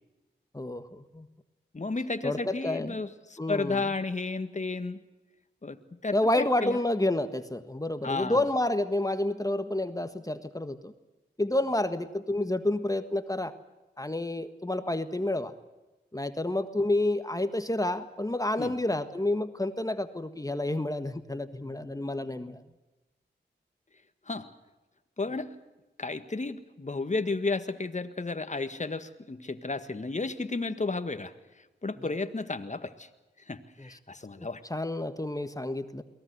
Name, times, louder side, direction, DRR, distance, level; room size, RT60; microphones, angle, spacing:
voice 1, 0.5-1.3 2.2-3.0 3.4-3.8 6.1-10.9 11.4-13.5 14.0-15.5 16.1-22.6 32.0-32.1 33.8-33.9 34.7-36.0, left 1 dB, 20° left, 10 dB, 1.6 m, -29 dB
voice 2, 1.7-5.0 5.6-6.8 8.0-8.4 18.6-18.7 24.3-24.5 25.2-25.6 26.0-31.3 31.8-33.1 33.5-34.6, left 3 dB, 40° left, 10 dB, 1.7 m, -33 dB
23.0 x 18.0 x 8.1 m, 1.1 s
cardioid pair, 40°, 19 cm